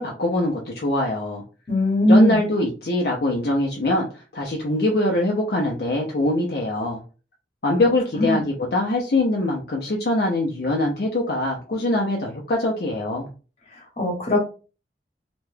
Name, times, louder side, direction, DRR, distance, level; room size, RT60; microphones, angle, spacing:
voice 1, 0.0-1.4 2.1-7.0 7.6-13.3, left 1 dB, 60° left, -1 dB, 0.5 m, -23 dB
voice 2, 1.7-2.4 8.1-8.4 13.7-14.4, left 1 dB, 35° left, -1 dB, 1.2 m, -19 dB
2.9 x 2.2 x 3.2 m, 0.35 s
head